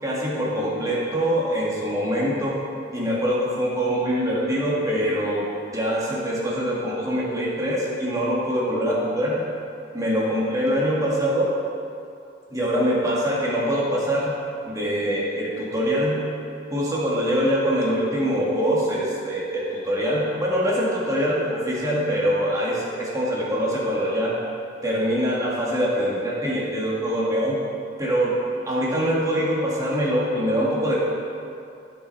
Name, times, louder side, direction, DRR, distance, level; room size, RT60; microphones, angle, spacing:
voice 1, 0.0-2.6 2.9-5.5 5.7-9.4 9.9-11.5 12.5-14.4 14.7-16.3 16.7-24.4 24.8-27.6 28.0-28.4 28.7-31.0, equal, 20° right, -6 dB, 2.1 m, -24 dB
14.5 x 6.4 x 4.2 m, 2.5 s
head